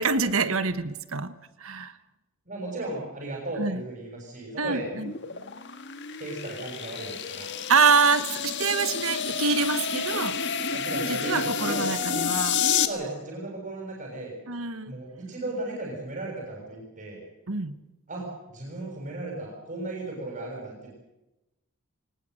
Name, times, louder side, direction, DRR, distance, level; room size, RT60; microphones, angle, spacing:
voice 1, 0.0-1.3 1.6-1.9 3.6-3.8 4.6-5.1 7.7-10.4 11.1-12.6 14.5-14.9 17.5-17.8, right 4 dB, 65° right, 12 dB, 1.3 m, -25 dB
voice 2, 2.5-4.9 6.2-7.5 10.7-11.9 12.8-14.3 14.9-17.2 18.1-20.9, right 2 dB, 35° right, -2 dB, 6.9 m, -36 dB
sound 1, 4.9-12.9, left 6 dB, 50° left, 1.7 m, -29 dB
23.0 x 19.5 x 7.9 m, 0.96 s
head